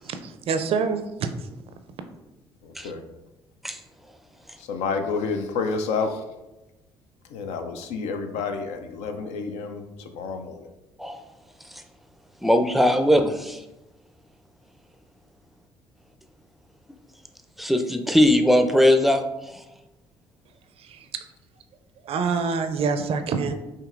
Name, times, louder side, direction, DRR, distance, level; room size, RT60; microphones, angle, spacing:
voice 1, 0.0-1.3 20.8-21.2 22.0-23.5, right 5 dB, 60° right, 8 dB, 0.4 m, -26 dB
voice 2, 2.6-3.0 4.6-6.2 7.3-10.7, left 4 dB, 80° left, 6 dB, 0.4 m, -29 dB
voice 3, 12.4-13.6 17.6-19.2 19.5-19.6, left 1 dB, ahead, 7 dB, 0.4 m, -20 dB
5.1 x 2.8 x 2.5 m, 0.99 s
supercardioid pair, 60°, 11 cm